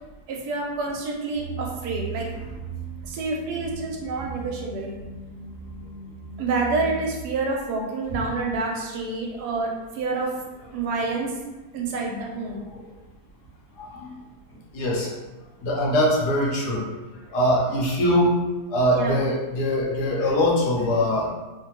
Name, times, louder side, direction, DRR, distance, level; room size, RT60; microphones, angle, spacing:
voice 1, 0.3-2.3 3.0-4.9 6.4-10.3 10.7-11.3 11.7-12.7 18.9-19.2, right 3 dB, 75° right, -1 dB, 1.1 m, -28 dB
sound 1, 1.3-7.2, right 4 dB, 40° right, 0.6 m, -37 dB
voice 2, 13.8-14.2 14.7-15.1 15.6-16.8 17.1-18.4 18.7-21.3, equal, 80° left, -4 dB, 1.3 m, -22 dB
3.2 x 2.1 x 2.9 m, 1.1 s
omnidirectional pair, 1.8 m